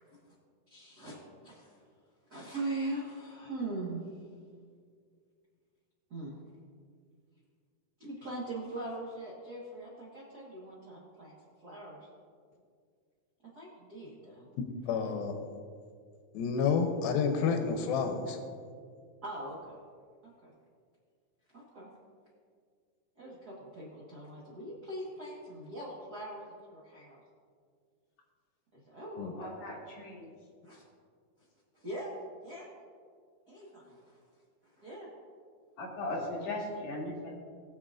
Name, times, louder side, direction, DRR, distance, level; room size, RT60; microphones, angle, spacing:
voice 1, 0.7-1.8 2.3-4.1 6.1-6.4 8.0-11.4 11.6-12.1 13.5-14.5 19.2-19.8 20.2-20.5 21.5-21.9 23.2-27.2 28.7-29.3 30.6-30.8 31.7-32.1 32.4-32.6 33.5-34.2 34.6-35.1, right 2 dB, 85° right, -6 dB, 0.8 m, -41 dB
voice 2, 14.9-15.3 16.3-18.4 29.2-29.3, left 6 dB, 90° left, 5 dB, 2.5 m, -29 dB
voice 3, 29.3-30.3 35.8-37.4, left 2 dB, 55° left, -4 dB, 2.9 m, -38 dB
20.5 x 7.0 x 2.5 m, 2.1 s
omnidirectional pair, 4.2 m